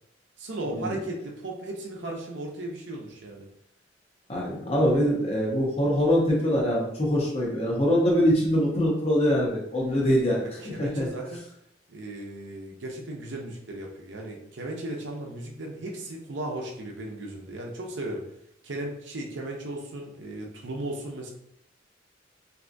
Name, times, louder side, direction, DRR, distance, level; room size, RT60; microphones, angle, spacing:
voice 1, 0.4-3.5 4.9-5.1 9.9-11.5 11.9-18.2 18.6-21.3, right 1 dB, 65° right, 0 dB, 0.7 m, -36 dB
voice 2, 4.3-10.4 10.8-11.1, equal, 35° left, -3 dB, 0.8 m, -23 dB
3.4 x 2.7 x 2.6 m, 0.75 s
head